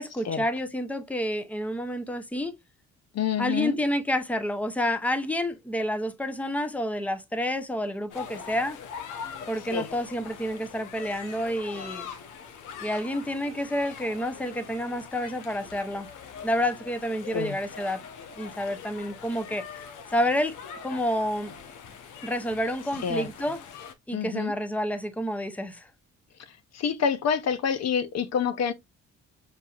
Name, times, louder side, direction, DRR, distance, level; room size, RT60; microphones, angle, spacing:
voice 1, 0.0-2.5 3.4-8.8 9.5-12.1 12.8-16.1 16.4-18.0 18.4-19.6 20.1-20.5 20.8-21.5 22.2-23.6 24.1-25.9, equal, 5° left, 0.7 m, -29 dB
voice 2, 3.1-3.8 9.7-9.9 17.3-17.6 23.0-23.3 24.1-24.5 26.7-28.7, left 7 dB, 60° left, 0.6 m, -27 dB
sound 1, 8.1-23.9, left 7 dB, 90° left, 0.8 m, -42 dB
6.4 x 2.7 x 2.3 m
cardioid pair, 90°, 30 cm